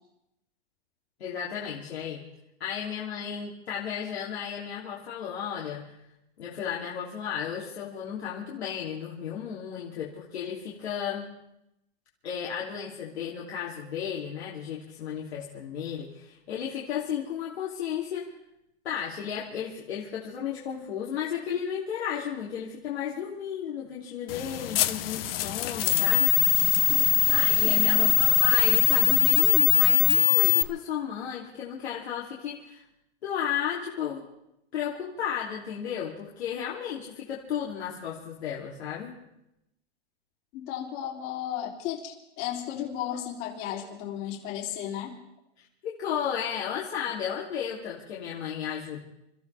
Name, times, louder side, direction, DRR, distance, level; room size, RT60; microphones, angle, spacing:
voice 1, 1.2-2.2 2.6-5.9 6.4-11.3 12.2-18.3 18.8-26.3 27.3-32.8 33.2-34.2 34.7-39.2 45.6-49.0, left 8 dB, 80° left, -4 dB, 3.2 m, -34 dB
sound 1, 24.3-30.6, left 15 dB, 65° left, 1.0 m, -22 dB
voice 2, 26.9-28.1 40.5-45.1, left 10 dB, 45° left, 0 dB, 3.3 m, -35 dB
28.5 x 14.5 x 3.5 m, 0.84 s
hypercardioid pair, 140°, 32 cm